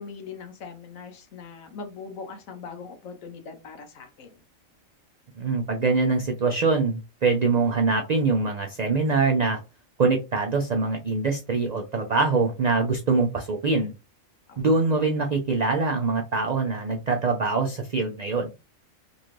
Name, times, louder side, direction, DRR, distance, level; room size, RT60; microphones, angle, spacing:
voice 1, 0.0-4.3 14.5-14.6, left 5 dB, 80° left, 6 dB, 1.2 m, -41 dB
voice 2, 5.4-9.6 10.0-13.9 14.6-18.5, right 4 dB, 65° right, 2 dB, 0.4 m, -24 dB
3.8 x 2.6 x 3.0 m, 0.27 s
omnidirectional pair, 1.4 m